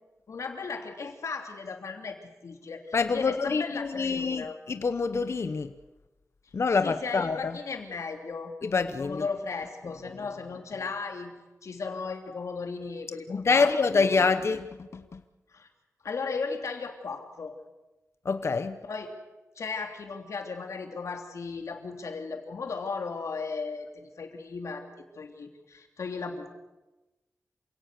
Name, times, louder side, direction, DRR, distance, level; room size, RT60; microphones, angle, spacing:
voice 1, 0.3-4.6 6.8-8.5 9.0-11.3 11.6-14.1 15.5-15.7 16.0-17.5 18.9-19.1 19.6-26.5, left 4 dB, 75° left, 4 dB, 3.0 m, -36 dB
voice 2, 2.9-5.7 6.5-7.6 8.6-9.3 13.3-15.2 18.2-18.8, left 4 dB, 60° left, 10 dB, 1.0 m, -26 dB
27.5 x 17.5 x 6.8 m, 1.1 s
wide cardioid pair, 70°, 5 cm